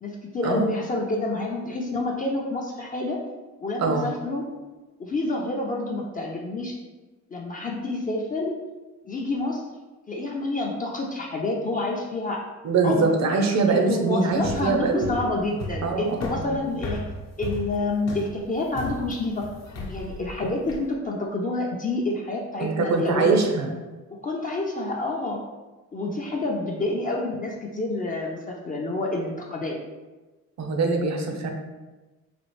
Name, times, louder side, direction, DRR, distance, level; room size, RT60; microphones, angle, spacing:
voice 1, 0.0-3.2 3.6-4.4 5.0-6.7 7.3-8.6 9.0-9.6 10.1-12.4 12.8-13.2 13.7-17.0 17.4-19.5 19.9-23.4 24.1-25.4 25.9-29.8, left 2 dB, 25° left, -2 dB, 0.4 m, -28 dB
voice 2, 12.6-15.2 15.8-16.5 22.6-23.7 30.6-31.5, right 4 dB, 60° right, 3 dB, 0.6 m, -23 dB
sound 1, 14.3-20.9, left 2 dB, 60° left, 0.8 m, -35 dB
4.1 x 2.4 x 3.1 m, 1.2 s
cardioid pair, 105°, 31 cm